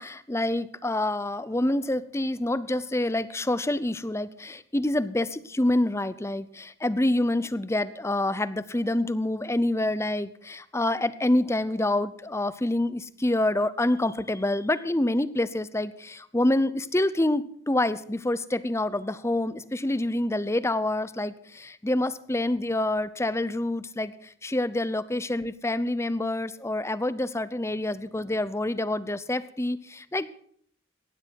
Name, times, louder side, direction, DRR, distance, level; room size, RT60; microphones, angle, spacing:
voice 1, 0.0-30.3, left 1 dB, 15° left, 16 dB, 0.7 m, -27 dB
18.0 x 13.0 x 4.7 m, 0.63 s
head